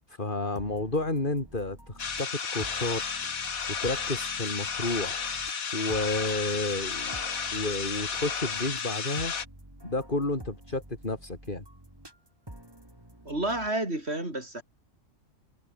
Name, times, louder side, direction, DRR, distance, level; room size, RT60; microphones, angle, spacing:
voice 1, 0.1-3.0 3.8-5.2 5.7-7.2 7.5-9.3 9.8-11.6, left 2 dB, 35° left, 4.2 m, -31 dB
sound 1, 0.5-13.7, right 1 dB, 15° right, 4.4 m, -49 dB
sound 2, 2.0-9.5, left 6 dB, 80° left, 2.2 m, -33 dB
voice 2, 13.3-14.6, right 1 dB, 45° right, 6.9 m, -30 dB
omnidirectional pair, 1.5 m